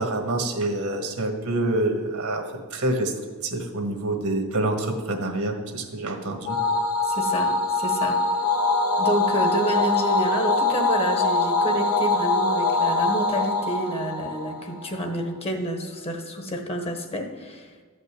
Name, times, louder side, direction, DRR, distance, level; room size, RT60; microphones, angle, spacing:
voice 1, 0.0-2.4 2.7-3.1 3.4-6.6, right 2 dB, 70° right, 4 dB, 1.6 m, -26 dB
sound 1, 6.5-15.1, left 2 dB, 70° left, 1.1 m, -23 dB
voice 2, 7.0-8.2 9.0-17.7, right 1 dB, 25° left, 4 dB, 1.2 m, -29 dB
13.0 x 5.4 x 8.3 m, 1.4 s
head